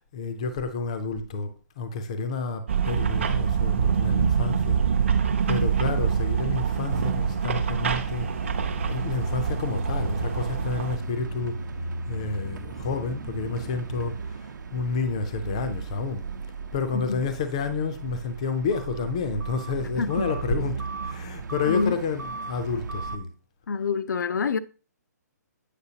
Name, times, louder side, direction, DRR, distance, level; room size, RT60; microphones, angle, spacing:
voice 1, 0.1-4.8 5.5-8.3 8.9-11.6 12.1-16.2 16.7-23.3, left 4 dB, 20° left, 0.4 m, -30 dB
sound 1, 2.7-11.0, right 7 dB, 45° right, 0.6 m, -25 dB
sound 2, 5.4-23.2, right 3 dB, 85° right, 0.8 m, -34 dB
voice 2, 20.0-20.3 21.7-21.9 23.7-24.6, left 5 dB, 85° left, 0.5 m, -26 dB
8.2 x 5.6 x 2.8 m
hypercardioid pair, 180°, 10 cm